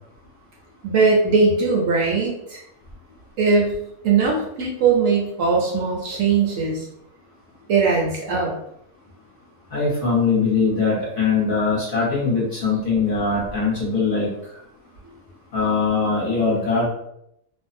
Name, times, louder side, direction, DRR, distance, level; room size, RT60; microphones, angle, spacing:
voice 1, 0.8-2.6 3.4-3.8 4.0-6.9 7.7-8.5, right 4 dB, 70° right, -1 dB, 0.9 m, -20 dB
voice 2, 9.7-14.3 15.5-16.8, left 4 dB, 45° left, -6 dB, 0.9 m, -21 dB
2.5 x 2.1 x 2.5 m, 0.76 s
omnidirectional pair, 1.5 m